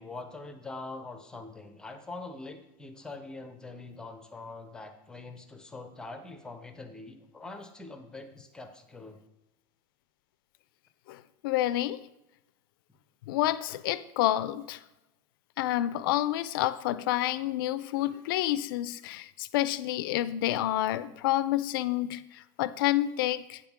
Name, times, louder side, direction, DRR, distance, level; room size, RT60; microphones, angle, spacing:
voice 1, 0.0-9.2, left 3 dB, 5° left, 6 dB, 0.5 m, -43 dB
voice 2, 11.4-12.0 13.3-14.8 15.6-23.6, left 14 dB, 85° left, 14 dB, 0.4 m, -29 dB
8.6 x 3.6 x 5.9 m, 0.93 s
supercardioid pair, 165°, 11 cm